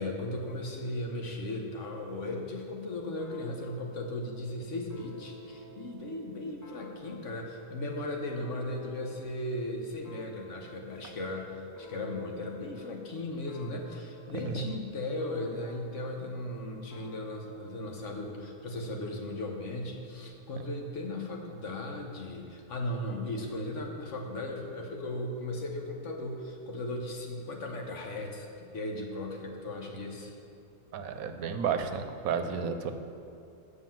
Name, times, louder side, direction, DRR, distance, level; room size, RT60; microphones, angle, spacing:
voice 1, 0.0-30.3, left 1 dB, 60° left, 1 dB, 1.3 m, -37 dB
sound 1, 3.2-9.4 10.0-16.3 16.9-18.4, equal, 20° left, 0.5 m, -51 dB
voice 2, 30.9-32.9, right 6 dB, 80° right, 8 dB, 1.1 m, -32 dB
7.5 x 6.2 x 7.4 m, 2.6 s
omnidirectional pair, 1.5 m